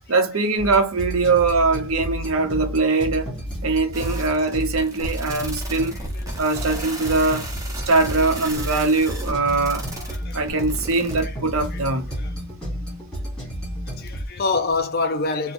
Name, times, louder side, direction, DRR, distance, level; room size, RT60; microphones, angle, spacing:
voice 1, 0.1-3.3 3.6-6.0 6.4-7.5 7.9-9.9 10.3-12.1, right 3 dB, 65° right, 0.8 m, -21 dB
sound 1, 0.6-14.3, equal, 5° left, 2.2 m, -32 dB
sound 2, 3.9-11.2, right 2 dB, 15° right, 0.8 m, -35 dB
voice 2, 9.9-10.4 11.7-11.8 12.2-12.3 14.0-15.5, left 3 dB, 45° left, 0.5 m, -26 dB
4.3 x 2.2 x 2.5 m
head